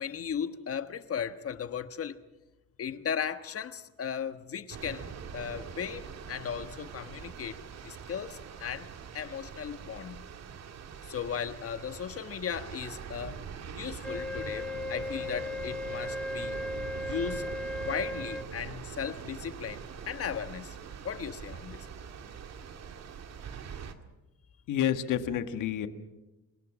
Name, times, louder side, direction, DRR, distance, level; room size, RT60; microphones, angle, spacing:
voice 1, 0.0-2.2 2.8-8.9 9.1-10.3 11.1-13.4 13.7-16.6 17.0-17.4 17.8-20.8 21.0-21.8, left 7 dB, 45° left, 1.4 m, -36 dB
sound 1, 4.7-23.9, right 7 dB, 55° right, 2.0 m, -43 dB
Wind instrument woodwind instrument, 14.0-18.5, left 2 dB, 5° left, 0.9 m, -36 dB
voice 2, 24.7-25.9, left 10 dB, 80° left, 1.7 m, -29 dB
27.0 x 18.0 x 6.3 m
cardioid pair, 95°, 31 cm